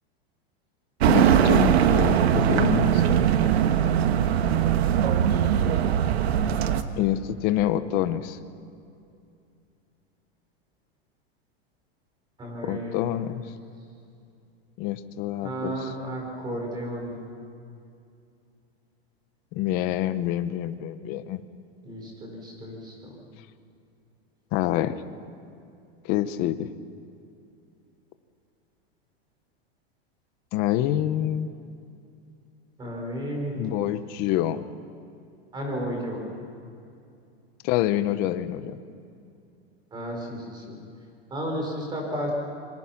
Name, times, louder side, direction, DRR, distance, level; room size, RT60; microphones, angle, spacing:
sound 1, 1.0-6.8, right 9 dB, 80° right, 1.5 m, -21 dB
voice 1, 1.1-3.0 7.0-8.4 12.6-13.4 14.8-15.9 19.5-21.4 24.5-25.0 26.0-26.7 30.5-31.5 33.6-34.7 37.6-38.8, left 12 dB, 30° left, 12 dB, 0.8 m, -26 dB
voice 2, 12.4-13.4 15.4-17.2 21.8-23.3 32.8-33.6 35.5-36.3 39.9-40.8 41.3-42.3, equal, 15° right, 1 dB, 4.9 m, -33 dB
26.0 x 24.0 x 5.9 m, 2.5 s
supercardioid pair, 165°, 31 cm